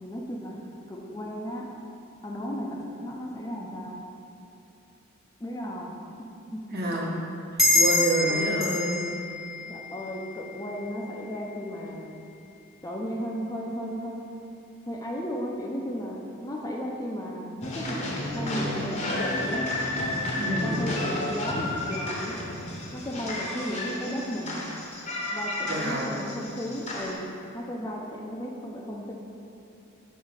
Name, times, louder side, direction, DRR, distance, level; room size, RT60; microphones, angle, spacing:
voice 1, 0.0-0.6 0.9-1.7 2.2-4.0 5.4-5.9 6.5-7.1 8.3-8.5 9.7-12.1 12.8-14.2 14.9-18.0 18.3-19.7 20.4-22.4 22.9-24.6 25.3-29.1, equal, 15° left, -1 dB, 0.5 m, -34 dB
voice 2, 6.7-7.1 7.7-9.0 20.4-20.8 25.6-26.1, right 1 dB, 50° right, -3 dB, 1.1 m, -28 dB
sound 1, 7.6-10.7, left 2 dB, ahead, 0.9 m, -26 dB
sound 2, 17.6-27.1, left 1 dB, 35° left, 0.8 m, -32 dB
5.6 x 3.9 x 5.1 m, 2.8 s
head